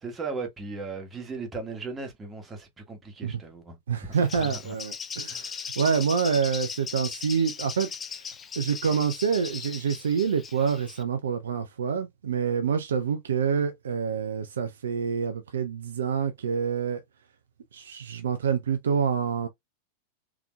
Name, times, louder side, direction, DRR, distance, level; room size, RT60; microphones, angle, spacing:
voice 1, 0.0-4.7 5.3-5.5, right 4 dB, 15° right, 1.4 m, -37 dB
voice 2, 3.9-8.3 8.6-17.0 17.7-19.5, right 6 dB, 65° right, 0.6 m, -27 dB
Bird, 4.1-11.0, left 6 dB, 20° left, 0.5 m, -38 dB
3.6 x 3.5 x 2.3 m
figure-of-eight pair, 90°, 0 cm